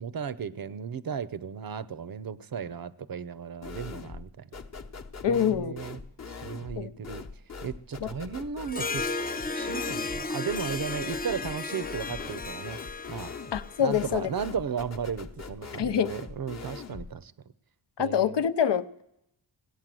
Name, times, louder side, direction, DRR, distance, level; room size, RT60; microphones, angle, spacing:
voice 1, 0.0-4.5 5.3-6.0 6.3-7.2 7.6-9.0 9.5-12.8 13.1-13.3 13.8-17.3 18.0-18.4, right 7 dB, 50° right, 0.7 m, -35 dB
sound 1, 3.6-4.3 4.5-17.1, left 4 dB, 35° left, 1.0 m, -42 dB
voice 2, 5.2-5.7 6.8-6.9 8.0-8.1 13.5-14.3 15.8-16.1 18.0-19.0, left 8 dB, 65° left, 0.7 m, -26 dB
Harp, 8.6-14.4, left 3 dB, 20° left, 0.6 m, -34 dB
17.0 x 8.6 x 7.6 m
cardioid pair, 75°, 46 cm